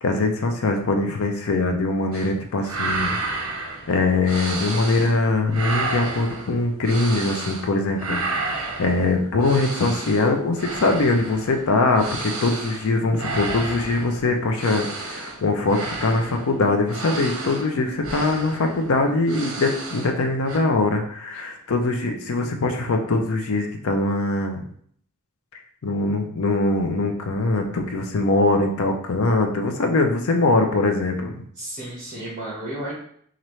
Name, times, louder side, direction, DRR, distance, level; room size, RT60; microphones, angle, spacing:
voice 1, 0.0-3.2 3.9-8.2 8.8-24.6 25.8-31.3, left 2 dB, 70° left, 4 dB, 0.5 m, -22 dB
sound 1, 2.1-2.3 2.6-5.2 5.5-7.7 8.0-20.2 20.4-20.6, right 3 dB, 70° right, 0.8 m, -31 dB
voice 2, 31.5-32.9, right 1 dB, 35° right, -7 dB, 1.2 m, -33 dB
4.1 x 2.5 x 3.1 m, 0.62 s
head